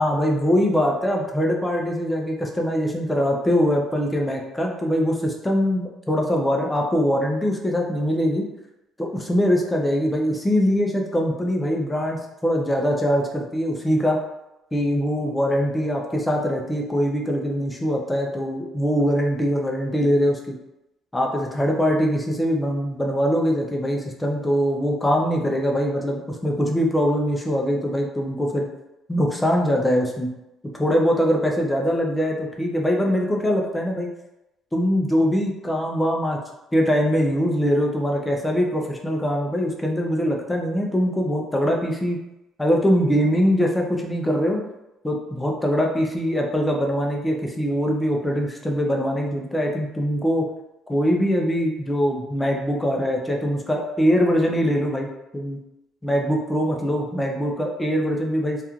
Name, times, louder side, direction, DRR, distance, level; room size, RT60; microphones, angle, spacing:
voice 1, 0.0-8.4 9.0-14.2 14.7-20.5 21.1-28.7 29.1-30.3 30.7-34.1 34.7-36.4 36.7-42.2 42.6-44.6 45.0-50.5 50.9-55.6 56.0-58.6, equal, 5° left, 0 dB, 0.3 m, -22 dB
2.9 x 2.2 x 2.4 m, 0.92 s
cardioid pair, 175°, 0 cm